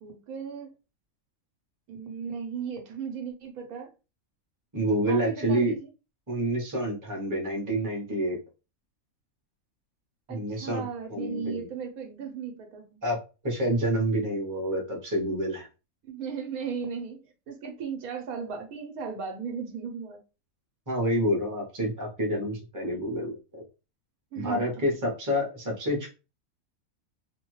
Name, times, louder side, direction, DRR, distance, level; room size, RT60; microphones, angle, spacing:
voice 1, 0.0-0.7 1.9-3.9 5.1-5.9 10.3-13.0 16.1-20.2 24.3-24.7, right 6 dB, 85° right, 1.2 m, -36 dB
voice 2, 4.7-5.7 6.3-8.4 10.3-11.7 13.0-13.2 13.4-15.7 20.9-23.6 24.4-26.1, equal, 15° right, 0.7 m, -28 dB
2.6 x 2.2 x 3.0 m
omnidirectional pair, 1.5 m